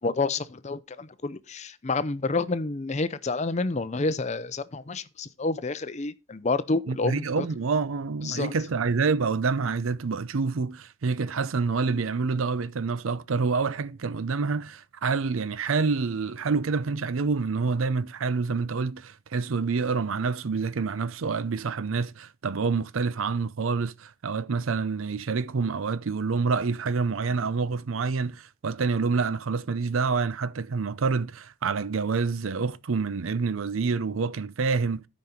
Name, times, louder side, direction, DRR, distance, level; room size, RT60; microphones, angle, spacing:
voice 1, 0.0-7.5 8.2-8.5, left 3 dB, 35° left, 0.5 m, -29 dB
voice 2, 6.9-35.1, right 4 dB, 80° right, 0.5 m, -27 dB
13.0 x 5.3 x 4.3 m
head